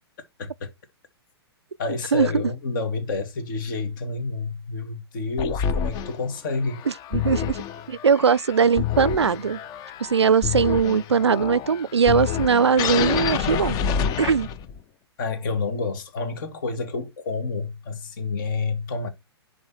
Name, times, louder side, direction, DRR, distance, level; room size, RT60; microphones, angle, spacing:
voice 1, 1.8-6.8 15.2-19.1, left 4 dB, 50° left, 2.3 m, -29 dB
sound 1, 5.4-14.8, left 8 dB, 25° left, 0.7 m, -28 dB
voice 2, 7.1-9.6 10.0-13.8 14.2-14.5, right 6 dB, 85° right, 0.4 m, -20 dB
10.5 x 3.9 x 4.4 m
figure-of-eight pair, 110°, 14 cm